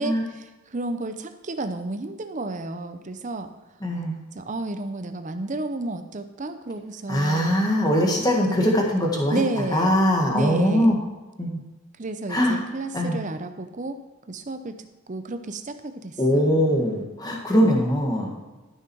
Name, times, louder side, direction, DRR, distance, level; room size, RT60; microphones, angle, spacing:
voice 1, 0.0-3.5 4.3-7.6 8.5-8.7 9.3-10.0 10.3-11.0 12.0-14.0 14.3-16.6, right 2 dB, 35° right, 8 dB, 0.6 m, -32 dB
voice 2, 3.8-4.1 7.1-9.4 9.7-11.0 11.4-11.6 12.3-12.6 12.9-13.2 16.2-18.3, equal, 15° left, 0 dB, 1.6 m, -21 dB
13.0 x 6.2 x 4.6 m, 1.2 s
head